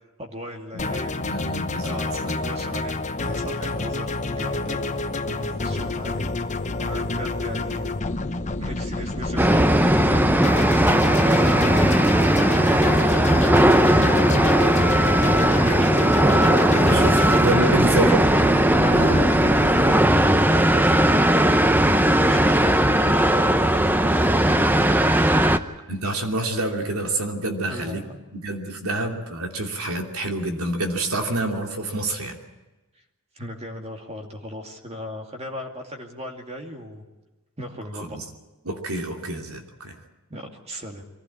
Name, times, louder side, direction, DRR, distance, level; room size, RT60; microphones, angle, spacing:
voice 1, 0.2-1.2 1.8-6.3 6.6-8.0 8.6-10.7 11.1-12.1 12.4-18.2 18.8-25.6 27.7-28.2 33.3-37.0 37.6-38.3 40.3-41.0, equal, 30° right, 3 dB, 2.4 m, -37 dB
sound 1, 0.8-20.0, left 3 dB, 35° left, 1.0 m, -28 dB
voice 2, 1.2-2.3 16.2-18.2 18.9-19.2 25.9-28.0 28.3-32.4 38.0-38.2 38.6-40.0, right 2 dB, 80° right, 3 dB, 2.9 m, -28 dB
sound 2, 9.4-25.6, right 1 dB, 10° right, 0.7 m, -18 dB
23.5 x 16.0 x 8.6 m, 1.1 s
head